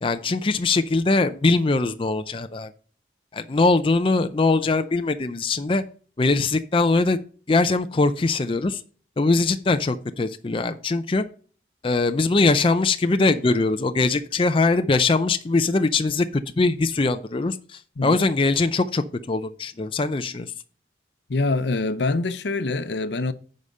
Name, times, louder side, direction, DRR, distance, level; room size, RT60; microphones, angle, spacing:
voice 1, 0.0-2.7 3.3-5.8 6.2-7.2 7.5-8.8 9.2-11.2 11.8-16.3 16.6-20.5, left 3 dB, 30° left, 0.4 m, -21 dB
voice 2, 21.3-23.3, left 3 dB, 80° left, 0.7 m, -25 dB
9.5 x 5.0 x 5.4 m
head